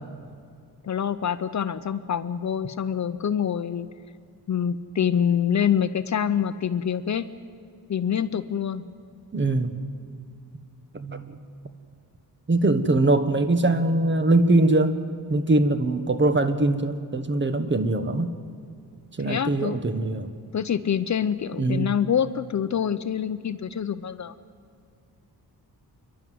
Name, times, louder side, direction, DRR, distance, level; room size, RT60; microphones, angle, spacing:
voice 1, 0.8-3.9 4.5-7.3 7.9-8.8 19.2-19.8 20.5-24.3, left 8 dB, 45° left, 12 dB, 0.7 m, -26 dB
voice 2, 9.3-9.7 10.9-11.4 12.5-15.0 15.3-18.3 19.2-20.3 21.6-21.9, right 2 dB, 30° right, 10 dB, 1.3 m, -22 dB
28.0 x 11.5 x 9.4 m, 2.3 s
wide cardioid pair, 115°, 39 cm